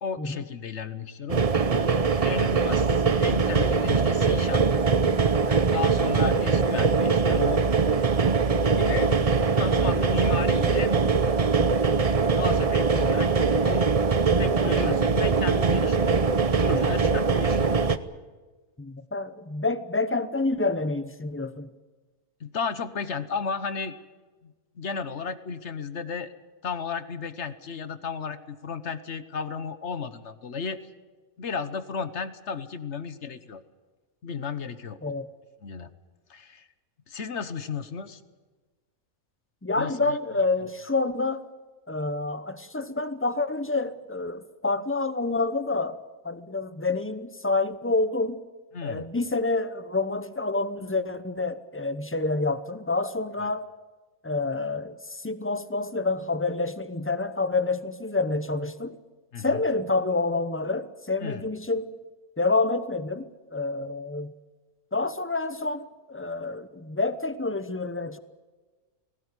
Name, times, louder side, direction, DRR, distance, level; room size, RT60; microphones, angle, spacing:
voice 1, 0.0-2.0 2.2-4.6 5.5-7.6 8.7-9.1 9.6-10.9 12.4-13.9 14.4-16.2 16.6-17.8 22.4-23.9 24.4-26.3 26.6-30.8 31.4-33.6 34.2-35.0 35.6-35.9 36.3-36.6 37.1-38.2 39.8-40.2 48.7-49.1 59.3-59.6 61.2-61.5, left 5 dB, 50° left, 13 dB, 1.3 m, -33 dB
sound 1, 1.3-18.0, right 4 dB, 35° right, 0.6 m, -22 dB
voice 2, 18.8-21.7 35.0-35.3 39.6-41.4 41.9-48.4 48.8-53.7 54.2-59.0 59.4-62.0 62.4-64.3 64.9-68.2, left 3 dB, 15° left, 13 dB, 0.5 m, -28 dB
19.5 x 17.5 x 9.9 m, 1.3 s
omnidirectional pair, 1.6 m